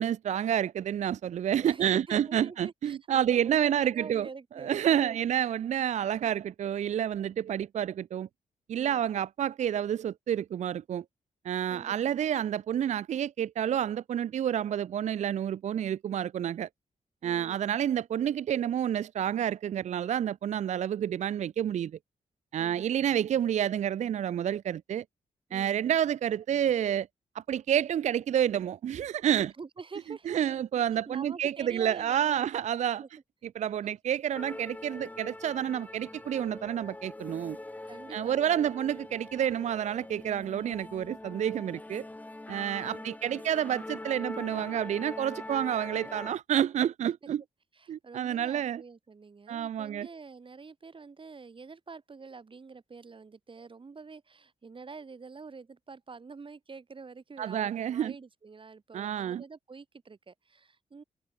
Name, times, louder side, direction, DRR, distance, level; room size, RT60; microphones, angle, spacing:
voice 1, 0.0-4.3 4.6-8.3 8.7-11.0 11.4-16.7 17.2-21.9 22.5-25.0 25.5-27.1 27.3-29.5 30.3-33.0 33.6-37.6 38.1-42.0 42.5-47.4 47.9-48.8 49.5-50.1 57.4-58.1 58.9-59.4, right 10 dB, 60° right, 0.4 m, -29 dB
voice 2, 1.6-5.2 8.7-9.1 11.7-12.2 17.2-17.8 22.6-23.1 25.5-25.8 29.6-30.4 31.1-32.5 33.0-33.1 37.8-38.7 42.8-43.4 47.7-61.0, right 4 dB, 40° right, 3.9 m, -47 dB
sound 1, 34.3-46.3, left 2 dB, 10° left, 0.6 m, -43 dB
cardioid pair, 80°, 14 cm